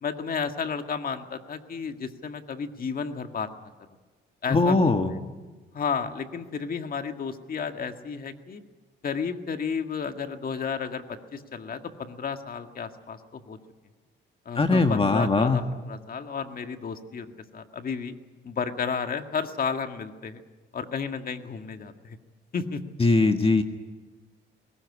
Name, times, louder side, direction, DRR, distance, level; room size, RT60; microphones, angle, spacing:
voice 1, 0.0-3.5 4.4-5.0 5.7-8.6 9.0-13.6 14.5-18.1 18.4-20.4 20.7-22.2 22.5-22.8, left 6 dB, 45° left, 6 dB, 1.9 m, -32 dB
voice 2, 4.5-5.1 14.5-15.6 23.0-23.6, left 3 dB, 30° left, 6 dB, 1.6 m, -21 dB
21.0 x 19.0 x 9.8 m, 1.3 s
cardioid pair, 90°, 20 cm